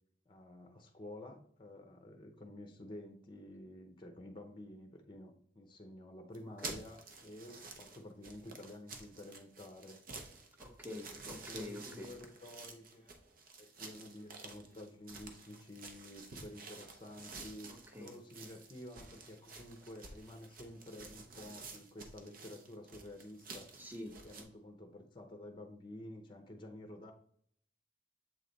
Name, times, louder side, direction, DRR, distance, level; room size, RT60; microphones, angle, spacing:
voice 1, 0.3-10.0 11.1-13.1 13.6-23.8 24.2-27.1, left 1 dB, 25° left, 5 dB, 0.7 m, -51 dB
sound 1, 6.3-24.4, right 4 dB, 50° right, 0.8 m, -51 dB
voice 2, 10.6-12.1 17.9-18.1 23.8-24.1, left 1 dB, 10° right, 2 dB, 0.9 m, -46 dB
7.6 x 3.2 x 3.9 m, 0.62 s
head